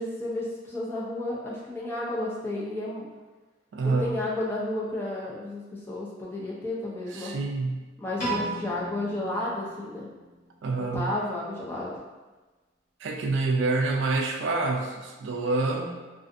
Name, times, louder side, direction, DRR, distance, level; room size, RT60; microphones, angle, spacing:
voice 1, 0.0-3.1 3.8-7.3 8.0-10.1 10.9-12.0, left 1 dB, 10° left, -5 dB, 0.4 m, -32 dB
voice 2, 3.7-4.2 7.1-7.9 10.6-11.1 13.0-16.0, right 3 dB, 70° right, 2 dB, 0.3 m, -27 dB
Piano, 8.2-10.5, right 2 dB, 35° left, 0.8 m, -35 dB
2.4 x 2.4 x 2.5 m, 1.2 s
head